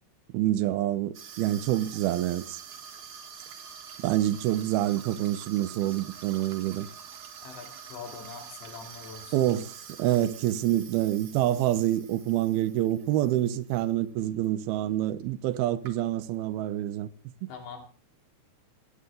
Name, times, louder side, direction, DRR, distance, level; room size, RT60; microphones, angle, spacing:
voice 1, 0.3-2.6 4.0-6.9 9.3-17.5, right 13 dB, 75° right, 2.5 m, -27 dB
Water tap faucet / Sink (filling or washing), 1.1-13.8 14.2-14.5 15.2-15.3 15.5-16.4, right 7 dB, 55° right, 1.9 m, -46 dB
voice 2, 7.4-9.5 17.5-17.8, left 5 dB, 80° left, 4.9 m, -43 dB
26.5 x 9.0 x 3.8 m
omnidirectional pair, 5.0 m